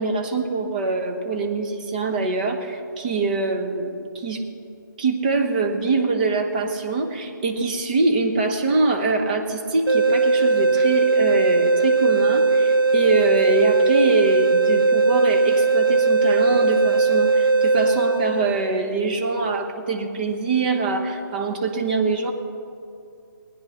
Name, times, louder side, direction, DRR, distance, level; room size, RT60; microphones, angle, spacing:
voice 1, 0.0-4.4 5.0-22.3, right 3 dB, 25° right, 3 dB, 1.0 m, -24 dB
sound 1, 9.9-18.8, right 3 dB, 75° right, 0.7 m, -19 dB
19.5 x 9.7 x 5.7 m, 2.6 s
hypercardioid pair, 170°, 11 cm